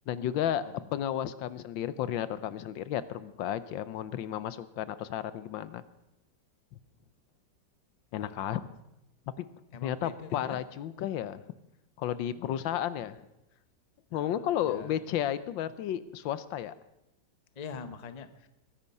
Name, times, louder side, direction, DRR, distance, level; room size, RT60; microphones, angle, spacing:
voice 1, 0.1-0.6 0.9-5.8 8.1-8.6 9.4-9.5 9.8-11.4 12.0-13.2 14.1-16.7, left 11 dB, 85° left, 15 dB, 1.5 m, -32 dB
voice 2, 8.2-8.6 9.7-10.6 12.3-13.1 14.1-15.0 17.6-18.5, left 5 dB, 35° left, 10 dB, 0.6 m, -45 dB
21.5 x 10.0 x 5.4 m, 0.89 s
omnidirectional pair, 2.0 m